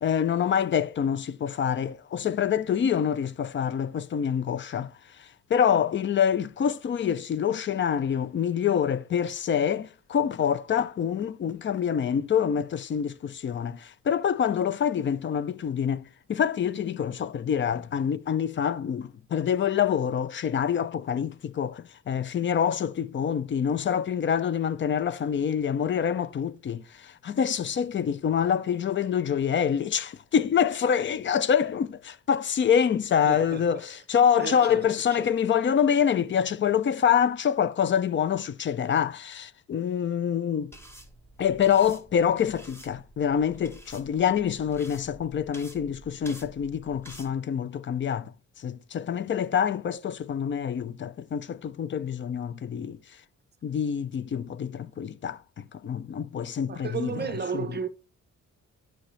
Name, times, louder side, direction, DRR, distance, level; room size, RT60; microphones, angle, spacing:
voice 1, 0.0-4.9 5.2-40.7 41.4-53.0 53.6-57.3 57.5-57.7, left 8 dB, 40° left, 0.5 m, -26 dB
voice 2, 33.3-33.8 34.3-35.3 56.7-57.9, right 6 dB, 35° right, 0.6 m, -34 dB
sound 1, 40.7-47.3, right 1 dB, 10° left, 1.3 m, -49 dB
11.5 x 5.1 x 3.2 m
wide cardioid pair, 165°, 29 cm